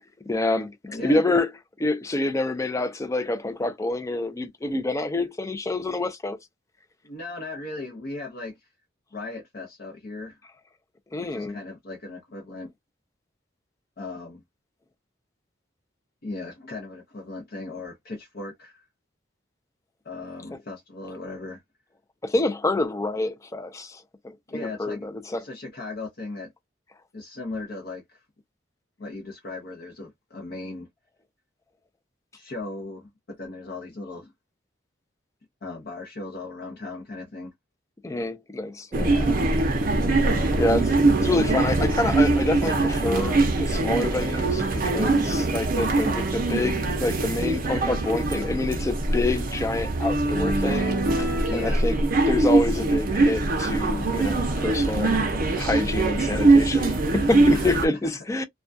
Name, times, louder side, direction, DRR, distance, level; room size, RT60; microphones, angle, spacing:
voice 1, 0.3-1.5 1.8-6.4 11.1-11.6 22.2-25.5 38.0-39.1 40.6-40.9 41.2-52.0 52.3-55.2 55.6-58.4, left 2 dB, 15° left, 0.3 m, -27 dB
voice 2, 0.9-1.2 7.0-8.5 9.1-10.4 11.2-12.7 14.0-14.4 16.2-18.8 20.0-21.6 24.5-26.5 27.1-28.2 29.0-30.9 32.3-34.3 35.6-37.5 39.0-39.4 40.3-40.7 51.5-51.9 57.5-57.9, left 2 dB, 55° left, 0.7 m, -37 dB
sound 1, 38.9-57.9, right 2 dB, 50° right, 0.6 m, -22 dB
2.2 x 2.2 x 2.5 m
head